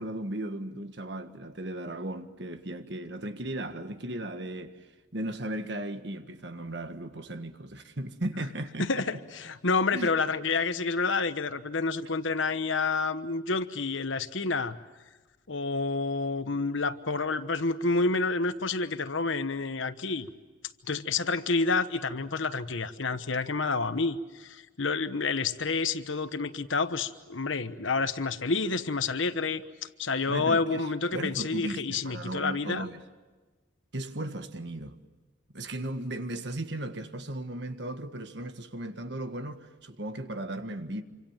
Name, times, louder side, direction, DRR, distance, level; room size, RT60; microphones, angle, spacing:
voice 1, 0.0-4.8 5.1-9.0 9.9-10.1 30.3-30.8 31.1-33.0 33.9-35.0 35.5-41.0, right 1 dB, 60° right, 1.6 m, -36 dB
voice 2, 8.8-14.8 15.5-20.3 20.9-29.6 30.0-32.9, left 4 dB, 75° left, 1.2 m, -29 dB
27.0 x 25.5 x 7.4 m
head